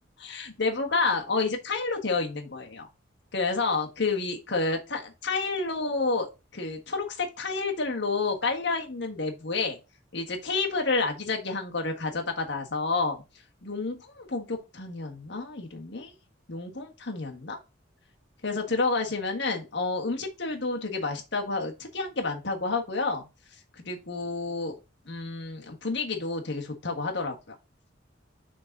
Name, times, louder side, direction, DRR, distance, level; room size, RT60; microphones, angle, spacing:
voice 1, 0.2-2.9 3.3-6.3 6.5-9.8 10.1-13.2 13.6-16.1 16.5-17.6 18.4-23.3 23.7-24.7 25.1-27.5, left 3 dB, 65° left, 1.5 m, -29 dB
6.5 x 3.9 x 3.9 m
head